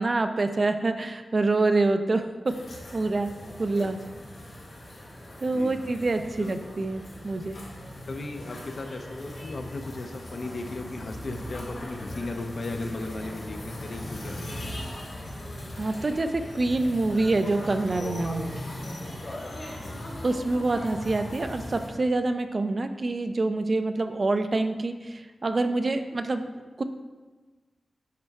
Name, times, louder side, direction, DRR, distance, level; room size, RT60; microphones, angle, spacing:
voice 1, 0.0-2.5 2.9-3.3 3.6-4.0 5.4-7.6 15.8-18.4 20.2-26.5 26.8-26.9, right 2 dB, 45° right, 8 dB, 0.4 m, -26 dB
sound 1, 2.5-21.9, left 1 dB, 85° left, 1.9 m, -39 dB
voice 2, 5.5-5.9 6.4-6.6 8.1-14.6 19.7-20.0, left 2 dB, 60° left, 5 dB, 0.5 m, -36 dB
9.3 x 4.3 x 2.4 m, 1.3 s
wide cardioid pair, 95°, 0 cm